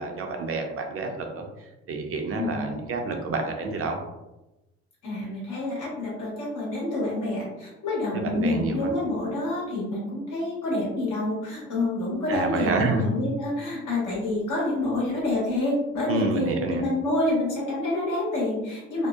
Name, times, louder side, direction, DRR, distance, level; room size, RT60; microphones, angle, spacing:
voice 1, 0.0-1.5 1.9-4.0 8.1-8.9 12.3-13.1 16.1-16.8, right 3 dB, 45° right, 3 dB, 0.5 m, -28 dB
voice 2, 2.3-2.7 5.0-19.1, left 2 dB, 80° left, -6 dB, 1.1 m, -28 dB
2.7 x 2.0 x 2.3 m, 0.99 s
cardioid pair, 90°, 30 cm